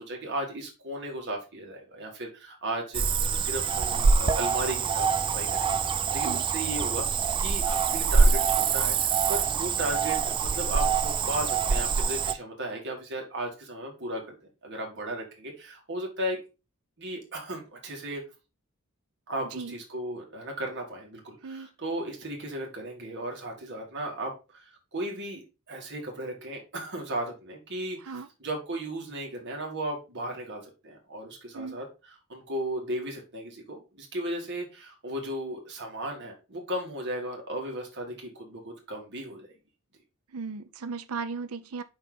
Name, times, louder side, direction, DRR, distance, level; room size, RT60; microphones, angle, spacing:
voice 1, 0.0-3.0 3.3-7.1 7.4-14.4 14.6-16.4 17.0-18.2 19.3-31.9 32.3-39.5, right 1 dB, 55° right, 2.1 m, -35 dB
Cricket / Frog, 2.9-12.4, right 5 dB, 25° right, 0.3 m, -25 dB
voice 2, 40.3-41.8, right 4 dB, 75° right, 0.6 m, -36 dB
5.6 x 4.4 x 3.9 m
head